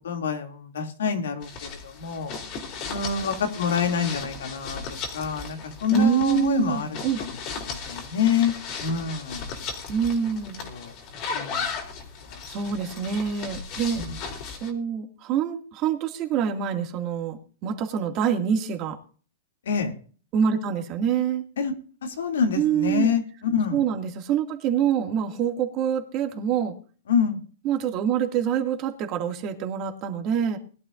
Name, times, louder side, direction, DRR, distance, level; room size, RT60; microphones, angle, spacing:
voice 1, 0.0-2.3 2.9-4.8 5.1-7.3 7.7-9.5 10.6-10.9 11.3-11.7 12.3-12.4 14.0-14.2 19.6-19.9 21.6-21.7 22.0-23.8 27.1-27.4, left 6 dB, 90° left, 4 dB, 2.7 m, -27 dB
sound 1, 1.4-14.7, left 5 dB, 35° left, 3.2 m, -36 dB
voice 2, 5.9-7.2 9.9-10.6 12.5-14.0 14.5-19.0 20.3-21.5 22.6-23.1 23.7-26.8 27.6-30.6, right 8 dB, 35° right, 3 dB, 2.3 m, -26 dB
21.0 x 12.0 x 2.6 m, 0.40 s
hypercardioid pair, 150°, 0 cm